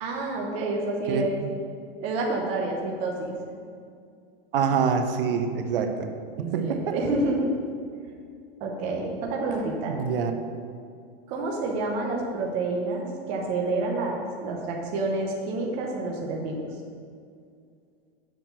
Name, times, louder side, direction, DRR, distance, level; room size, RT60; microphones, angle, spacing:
voice 1, 0.0-1.4 2.0-3.3 6.4-7.5 8.6-9.9 11.3-16.7, right 2 dB, 20° right, 0 dB, 0.7 m, -28 dB
voice 2, 1.1-1.5 4.5-6.9 9.9-10.3, right 6 dB, 65° right, 6 dB, 0.8 m, -26 dB
7.0 x 5.8 x 5.8 m, 2.3 s
supercardioid pair, 175°, 31 cm